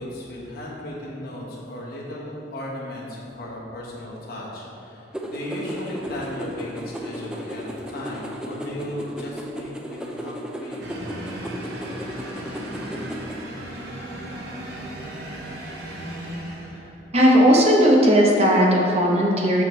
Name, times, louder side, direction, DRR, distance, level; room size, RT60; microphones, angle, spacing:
voice 1, 0.0-11.3, left 1 dB, 55° left, -4 dB, 1.2 m, -36 dB
sound 1, 5.1-13.4, equal, 5° right, 0.4 m, -35 dB
sound 2, 10.8-17.1, right 1 dB, 65° right, 0.9 m, -36 dB
voice 2, 17.1-19.6, equal, 35° right, -1 dB, 0.8 m, -16 dB
6.6 x 5.4 x 3.1 m, 2.8 s
head